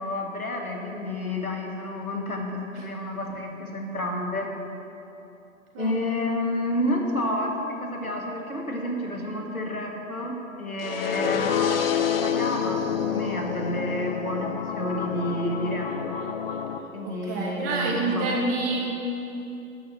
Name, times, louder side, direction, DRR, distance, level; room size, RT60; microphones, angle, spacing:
voice 1, 0.0-4.5 5.8-16.3 16.9-18.3, left 1 dB, 90° left, 1 dB, 1.6 m, -30 dB
sound 1, 10.8-16.8, left 8 dB, 45° left, 0.6 m, -28 dB
voice 2, 17.0-18.8, right 3 dB, 15° right, -1 dB, 0.5 m, -27 dB
11.5 x 4.2 x 7.6 m, 2.9 s
figure-of-eight pair, 120°, 42 cm